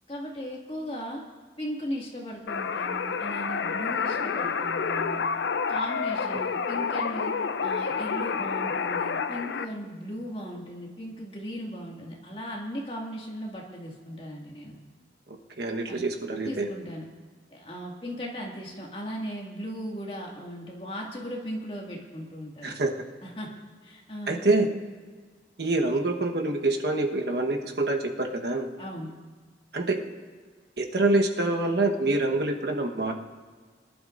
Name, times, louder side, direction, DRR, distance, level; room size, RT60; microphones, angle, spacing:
voice 1, 0.1-1.2 1.6-5.2 5.7-7.3 7.6-14.8 15.9-16.0 16.4-17.1 17.5-22.8 23.2-23.5 23.8-24.4 28.8-29.1, equal, 30° left, -2 dB, 2.0 m, -37 dB
sound 1, 2.5-9.7, left 5 dB, 85° left, 0.5 m, -29 dB
voice 2, 15.3-16.7 22.6-22.9 24.3-24.7 25.6-28.7 29.7-30.0 30.8-33.1, right 2 dB, 70° right, 2 dB, 1.2 m, -26 dB
23.0 x 12.0 x 2.5 m, 1.5 s
head